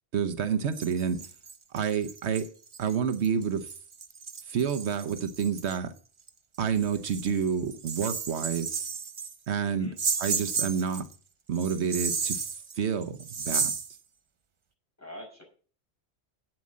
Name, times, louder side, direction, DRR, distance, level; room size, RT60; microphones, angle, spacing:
voice 1, 0.1-1.2 1.7-2.5 2.8-3.7 4.5-5.9 6.6-8.8 9.5-9.9 10.2-11.1 11.5-12.4 12.7-13.2 13.5-13.7, right 7 dB, 75° right, 1.1 m, -28 dB
sound 1, 0.7-5.8 6.3-6.4 6.8-9.4 10.0-11.1 11.6-14.0, right 5 dB, 35° right, 0.5 m, -33 dB
voice 2, 9.6-10.0 15.0-15.4, left 1 dB, 15° left, 5.2 m, -45 dB
8.6 x 7.5 x 7.5 m
omnidirectional pair, 1.1 m